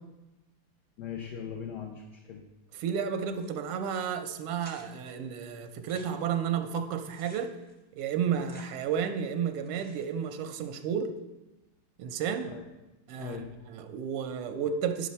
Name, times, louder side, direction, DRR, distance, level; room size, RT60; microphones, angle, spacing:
voice 1, 1.0-2.4 12.5-12.6 13.2-13.5, left 7 dB, 60° left, 1 dB, 1.2 m, -39 dB
voice 2, 2.8-7.5 7.9-11.1 12.0-12.5 13.1-13.4 13.7-15.1, right 7 dB, 90° right, 8 dB, 1.6 m, -32 dB
sound 1, 3.3-3.8 4.1-4.2 4.6-5.1 5.7-9.2 9.5-10.3, right 1 dB, 5° left, 0.8 m, -55 dB
10.0 x 6.2 x 4.2 m, 1.0 s
omnidirectional pair, 2.4 m